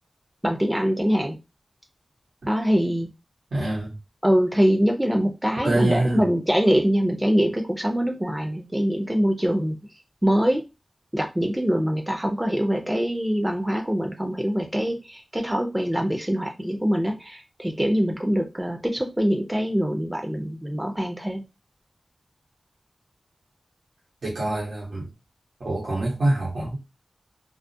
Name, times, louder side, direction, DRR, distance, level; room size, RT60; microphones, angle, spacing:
voice 1, 0.4-1.4 2.5-3.1 4.2-9.7 10.2-10.6 11.1-21.4, equal, 10° right, 0.4 m, -23 dB
voice 2, 3.5-4.0 5.6-6.2 24.2-25.1 25.6-26.8, right 1 dB, 90° right, 0.9 m, -25 dB
2.3 x 2.1 x 2.6 m
cardioid pair, 50°, 0 cm